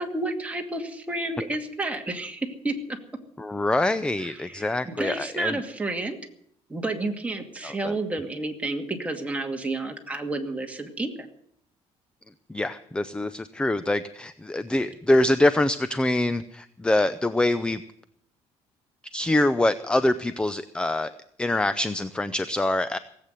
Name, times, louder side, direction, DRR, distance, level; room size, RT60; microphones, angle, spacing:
voice 1, 0.0-3.0 4.4-6.2 6.7-11.1, right 2 dB, 10° right, 3 dB, 2.3 m, -30 dB
voice 2, 3.4-5.6 7.6-7.9 12.5-17.8 19.1-21.1 21.4-23.0, left 1 dB, 10° left, 13 dB, 0.6 m, -24 dB
18.0 x 8.5 x 9.3 m, 0.66 s
cardioid pair, 110°, 11 cm